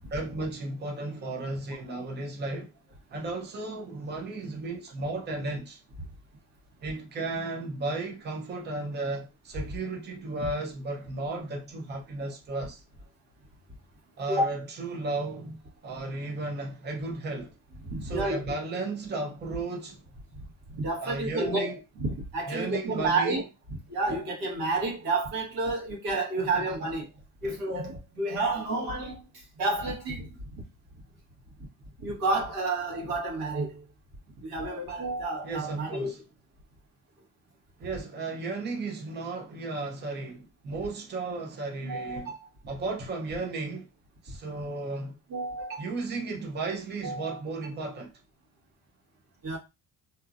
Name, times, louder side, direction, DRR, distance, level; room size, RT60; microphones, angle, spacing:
voice 1, 0.1-2.7 3.1-5.8 6.8-12.8 14.2-15.6 15.8-17.5 18.0-20.0 21.0-21.8 22.5-23.4 26.4-26.6 27.4-27.6 35.4-36.2 37.8-42.3 42.7-43.9 44.2-45.2 45.8-48.1, right 3 dB, 30° right, 0.7 m, -34 dB
voice 2, 17.8-18.4 20.7-23.4 23.9-27.0 27.4-29.2 29.6-30.3 32.0-33.8 34.4-36.1 41.8-42.4 45.3-45.8 47.0-47.4 49.4-49.6, right 2 dB, 70° right, 1.4 m, -30 dB
2.8 x 2.4 x 2.4 m
cardioid pair, 150°, 37 cm